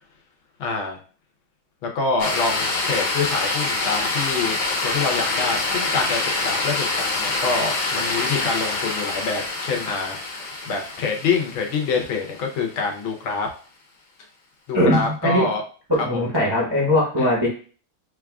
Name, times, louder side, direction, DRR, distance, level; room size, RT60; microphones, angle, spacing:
voice 1, 0.6-1.0 1.8-13.5 14.7-15.6 16.1-16.2 17.2-17.3, left 4 dB, 80° left, 1 dB, 1.6 m, -26 dB
sound 1, 2.2-12.5, left 3 dB, 60° left, 1.6 m, -26 dB
voice 2, 14.7-15.5 15.9-17.5, left 1 dB, 25° right, -4 dB, 0.5 m, -20 dB
6.4 x 2.4 x 2.3 m, 0.40 s
omnidirectional pair, 2.2 m